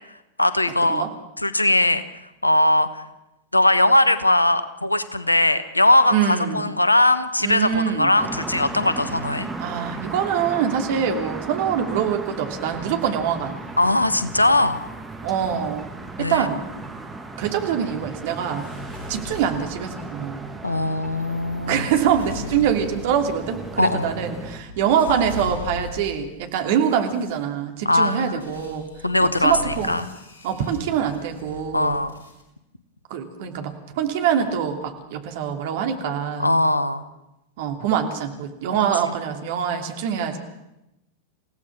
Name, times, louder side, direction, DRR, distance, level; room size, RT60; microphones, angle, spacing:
voice 1, 0.4-1.1 1.4-2.0 2.4-3.0 3.5-9.5 13.8-14.8 16.2-16.5 20.6-21.9 23.8-24.1 27.8-28.4 29.0-30.1 31.7-32.1 36.4-37.1, left 1 dB, 85° left, 13 dB, 1.3 m, -20 dB
voice 2, 6.1-6.7 7.4-8.1 9.6-13.6 15.2-16.6 17.4-18.7 19.1-20.5 21.7-28.9 29.2-30.0 30.4-32.0 33.1-36.5 37.6-40.4, right 8 dB, 50° right, 5 dB, 2.8 m, -24 dB
sound 1, 8.2-24.6, right 3 dB, 10° right, 2.5 m, -36 dB
sound 2, 18.6-20.2 20.9-26.4 27.0-27.3 28.4-32.4, left 4 dB, 65° left, 6.8 m, -39 dB
28.5 x 17.0 x 6.2 m, 0.90 s
figure-of-eight pair, 90°, 0 cm